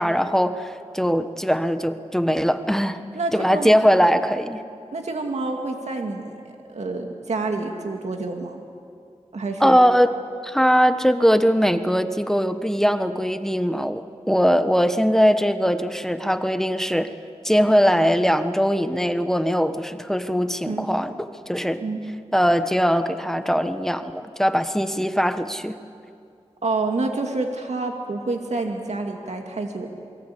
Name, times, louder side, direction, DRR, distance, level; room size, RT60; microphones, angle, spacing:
voice 1, 0.0-3.0 3.3-4.6 9.6-10.2 10.4-17.1 17.4-21.8 22.3-25.8, equal, 5° left, 9 dB, 1.3 m, -21 dB
voice 2, 3.1-3.7 4.9-6.4 6.7-8.6 9.3-9.8 20.7-20.9 21.8-22.0 26.6-29.9, right 3 dB, 75° right, 3 dB, 2.3 m, -28 dB
28.0 x 22.5 x 8.6 m, 2.4 s
wide cardioid pair, 60°, 12 cm